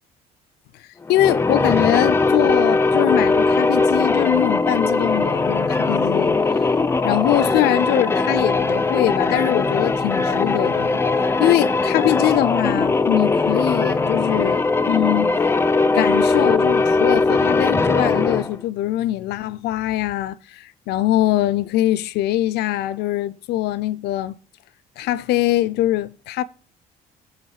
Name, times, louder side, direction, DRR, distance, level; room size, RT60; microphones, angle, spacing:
voice 1, 1.1-6.4 7.0-11.0 11.4-14.6 14.9-15.4 15.9-24.4 25.0-26.4, left 14 dB, 80° left, 0.5 m, -22 dB
sound 1, 1.1-18.6, left 3 dB, 15° left, 0.4 m, -20 dB
8.7 x 3.1 x 6.4 m
cardioid pair, 110°, 17 cm